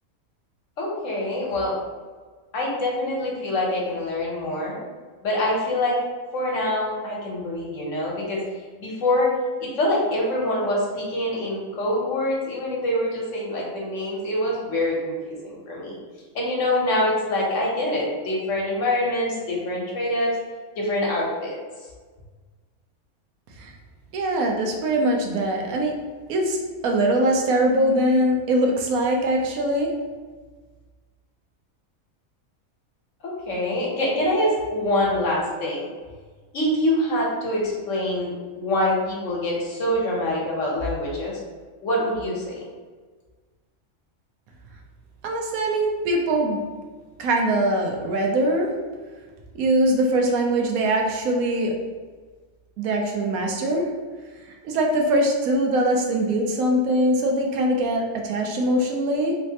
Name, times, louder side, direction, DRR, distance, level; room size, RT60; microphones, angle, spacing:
voice 1, 0.8-1.7 2.5-4.8 5.2-6.0 6.3-8.4 8.8-9.3 9.6-16.0 16.3-20.3 20.8-21.5 33.2-35.9 36.5-38.3 38.6-41.3 41.8-42.6, left 1 dB, 65° left, -4 dB, 1.2 m, -25 dB
voice 2, 24.1-25.9 26.3-29.9 45.2-46.6 47.2-48.7 49.5-51.7 52.8-53.9 54.5-59.4, right 1 dB, 80° right, 1 dB, 1.1 m, -22 dB
3.2 x 3.1 x 2.8 m, 1.4 s
omnidirectional pair, 1.5 m